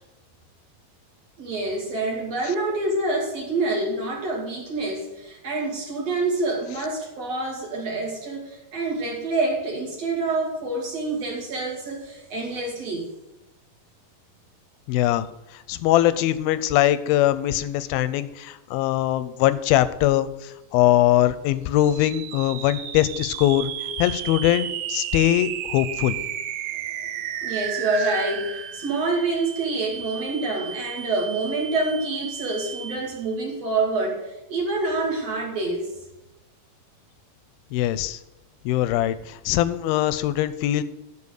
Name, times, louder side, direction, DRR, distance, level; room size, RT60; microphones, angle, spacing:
voice 1, 1.4-13.1 26.9-27.0 27.4-35.9, right 2 dB, 50° right, -2 dB, 3.0 m, -27 dB
voice 2, 14.9-15.3 15.5-23.7 24.0-26.2 37.7-38.2 38.7-40.8, left 13 dB, 90° left, 14 dB, 2.4 m, -22 dB
sound 1, 21.8-33.3, right 10 dB, 85° right, 2.4 m, -33 dB
11.0 x 4.8 x 6.5 m, 0.94 s
omnidirectional pair, 4.2 m